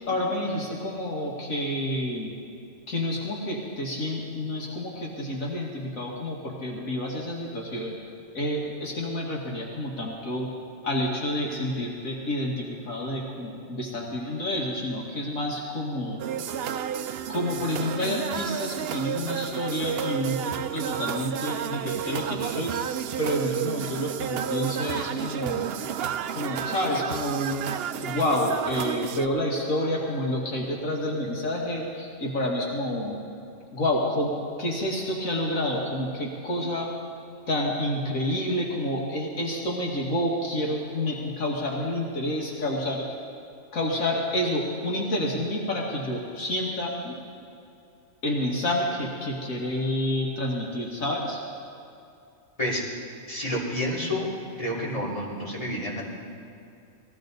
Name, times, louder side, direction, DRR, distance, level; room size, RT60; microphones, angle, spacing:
voice 1, 0.1-2.3 2.9-7.9 8.3-10.5 10.8-16.2 17.3-22.7 23.2-25.7 26.3-27.6 28.0-33.2 33.7-34.3 34.6-36.9 37.5-43.1 43.7-47.1 48.2-51.4, left 1 dB, 70° left, -2 dB, 2.1 m, -29 dB
sound 1, 16.2-29.3, right 9 dB, 65° right, 0.6 m, -31 dB
voice 2, 53.3-54.3 54.5-56.0, left 1 dB, 25° left, -5 dB, 3.1 m, -29 dB
20.0 x 15.5 x 4.0 m, 2.6 s
omnidirectional pair, 1.5 m